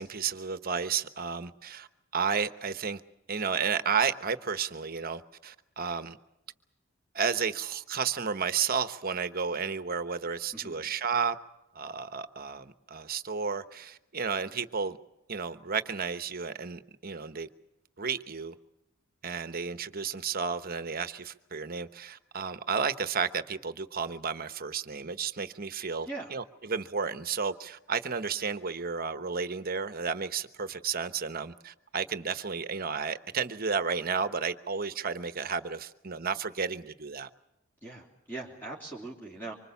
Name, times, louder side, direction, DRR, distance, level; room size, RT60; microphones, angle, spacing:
voice 1, 0.0-1.9 2.1-3.0 3.3-6.2 7.1-11.4 11.7-15.0 15.3-17.5 18.0-18.5 19.2-37.3, right 5 dB, 45° right, 11 dB, 1.1 m, -32 dB
voice 2, 37.8-39.5, right 2 dB, 10° left, -3 dB, 3.3 m, -41 dB
25.0 x 25.0 x 7.1 m, 0.87 s
head